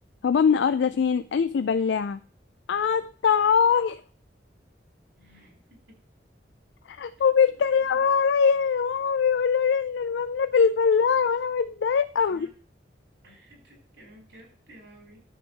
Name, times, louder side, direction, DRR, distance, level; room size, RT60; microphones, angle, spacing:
voice 1, 0.2-2.2 2.7-4.0 6.9-12.5, left 6 dB, 80° left, 0.4 m, -22 dB
voice 2, 5.2-5.8 7.5-7.9 12.3-12.5 13.2-15.2, equal, 85° right, 5.0 m, -53 dB
9.9 x 7.9 x 3.3 m
head